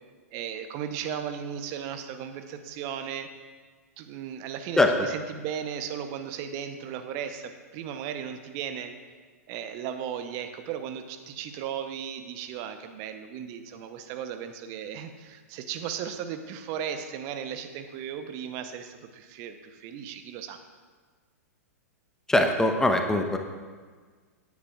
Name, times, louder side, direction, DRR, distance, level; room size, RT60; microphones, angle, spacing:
voice 1, 0.3-3.3 4.0-8.9 9.5-20.6, right 8 dB, 40° right, 8 dB, 0.8 m, -36 dB
voice 2, 22.3-23.4, left 1 dB, 5° left, 4 dB, 0.8 m, -22 dB
17.0 x 9.4 x 2.4 m, 1.5 s
figure-of-eight pair, 100°, 8 cm